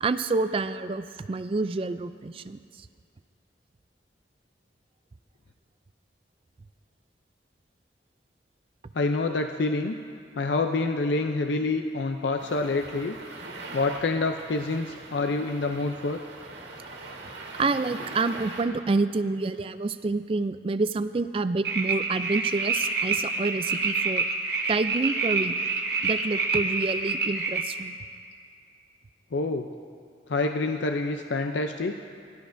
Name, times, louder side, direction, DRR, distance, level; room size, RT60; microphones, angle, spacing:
voice 1, 0.0-2.6 17.5-24.2 24.7-25.6 26.0-28.0, right 3 dB, 30° right, 12 dB, 0.3 m, -28 dB
voice 2, 8.9-9.9 10.4-13.2 13.7-16.2 29.3-29.7 30.3-32.0, left 3 dB, 80° left, 5 dB, 0.5 m, -27 dB
sound 1, 12.4-18.6, right 3 dB, 85° right, 1.7 m, -42 dB
sound 2, 21.6-27.6, right 4 dB, 60° right, 1.1 m, -27 dB
22.5 x 12.0 x 2.6 m, 2.3 s
head